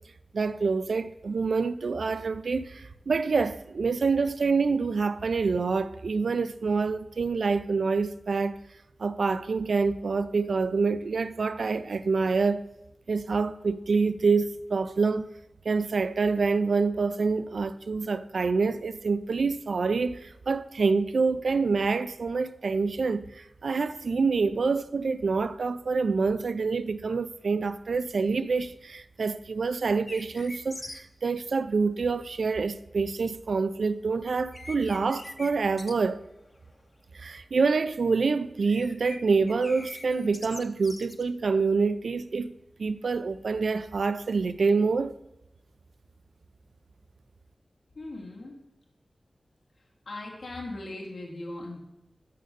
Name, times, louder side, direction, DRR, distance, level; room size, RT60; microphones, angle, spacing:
voice 1, 0.3-8.6 9.0-12.6 13.1-15.3 15.7-36.2 37.1-42.5 42.8-45.2, right 4 dB, 80° right, 0.4 m, -26 dB
sound 1, 30.1-31.0 34.1-34.2 34.5-35.5 35.8-35.9 36.2-36.8 37.1-37.4 38.5-39.2 39.5-41.2, left 2 dB, 30° left, 0.7 m, -43 dB
voice 2, 48.0-48.6 50.1-51.8, left 2 dB, 80° left, 1.7 m, -39 dB
6.6 x 6.5 x 6.6 m
wide cardioid pair, 85°, 0 cm